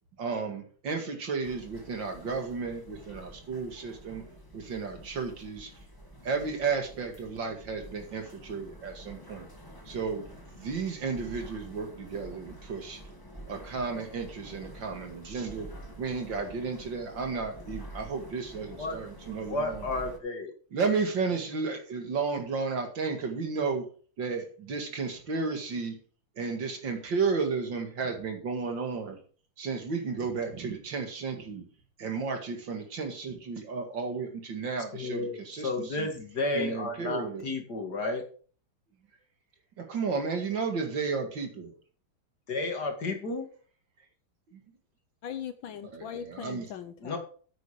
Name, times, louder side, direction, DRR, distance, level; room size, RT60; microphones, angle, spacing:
voice 1, 0.2-4.2 4.5-5.7 6.2-9.5 9.9-10.2 10.5-13.0 13.5-15.7 16.0-19.8 20.7-23.9 24.2-25.9 26.4-29.2 29.6-31.6 32.0-35.7 36.0-36.1 36.5-37.4 39.8-41.7 44.5-44.6 45.9-46.7, right 4 dB, 60° right, 2.6 m, -33 dB
sound 1, 1.4-20.2, equal, 10° left, 1.8 m, -48 dB
voice 2, 18.7-19.0 19.5-20.5 34.9-38.2 42.5-43.5 47.0-47.2, left 3 dB, 50° left, 2.6 m, -32 dB
voice 3, 45.2-47.2, left 8 dB, 70° left, 1.5 m, -40 dB
9.3 x 8.7 x 5.0 m
omnidirectional pair, 2.4 m